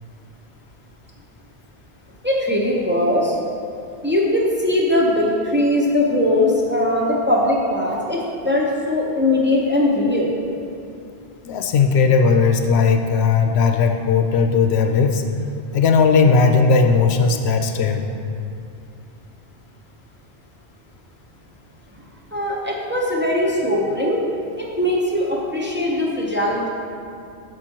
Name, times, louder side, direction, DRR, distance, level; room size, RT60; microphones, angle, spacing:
voice 1, 2.2-3.4 4.0-10.3 22.3-24.2 24.6-26.7, left 1 dB, 10° right, -4 dB, 0.7 m, -20 dB
voice 2, 11.4-15.2 15.7-18.0, left 5 dB, 80° left, 4 dB, 0.8 m, -17 dB
9.1 x 6.4 x 3.0 m, 2.6 s
omnidirectional pair, 1.1 m